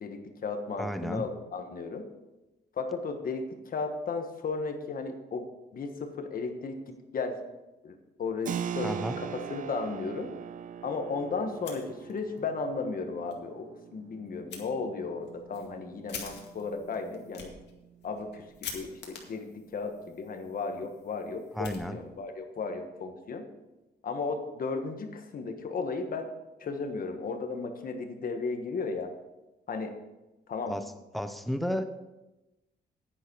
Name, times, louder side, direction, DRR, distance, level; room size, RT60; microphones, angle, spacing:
voice 1, 0.0-2.0 2.8-5.5 5.7-7.4 7.8-10.3 10.8-17.5 18.0-23.4 24.0-26.3 26.6-29.1 29.7-29.9 30.5-30.7, left 4 dB, 55° left, 6 dB, 1.4 m, -35 dB
voice 2, 0.8-1.3 8.8-9.2 21.5-22.0 30.7-30.8 31.1-31.8, equal, ahead, 9 dB, 0.7 m, -32 dB
Keyboard (musical), 8.5-18.8, right 8 dB, 50° right, 0.4 m, -42 dB
Fire, 11.5-12.4 12.8-12.9 13.3-13.4 14.5-14.6 15.2-22.4, left 6 dB, 80° left, 2.1 m, -46 dB
10.0 x 9.8 x 4.7 m, 1.0 s
wide cardioid pair, 135°, 18 cm